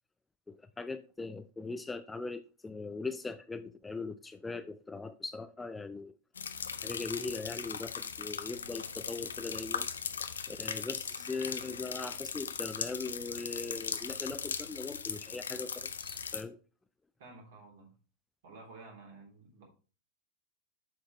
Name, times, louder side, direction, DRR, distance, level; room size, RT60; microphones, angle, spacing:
voice 1, 0.5-6.1 6.8-9.9 10.5-16.6, left 3 dB, 10° left, 0.4 m, -40 dB
sound 1, 6.4-16.4, left 6 dB, 70° left, 0.5 m, -39 dB
voice 2, 17.2-17.9 18.4-19.7, right 3 dB, 55° right, 3.2 m, -52 dB
7.5 x 6.1 x 3.1 m
figure-of-eight pair, 90°, 0 cm